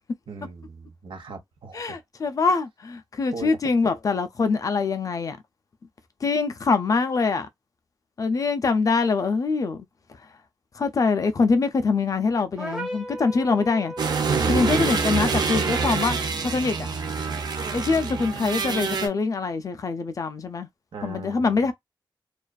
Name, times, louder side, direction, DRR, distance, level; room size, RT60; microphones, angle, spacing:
voice 1, 0.3-2.0 3.3-3.6 14.3-14.9 20.9-21.5, right 4 dB, 80° right, 0.8 m, -36 dB
voice 2, 1.7-5.4 6.2-7.5 8.2-9.9 10.7-13.9 14.5-16.9 17.7-20.7 21.0-21.7, left 4 dB, 40° left, 0.3 m, -24 dB
sound 1, 12.6-14.8, equal, 5° right, 0.7 m, -35 dB
sound 2, 14.0-19.1, right 5 dB, 55° right, 0.5 m, -26 dB
2.4 x 2.3 x 2.2 m
wide cardioid pair, 155°, 9 cm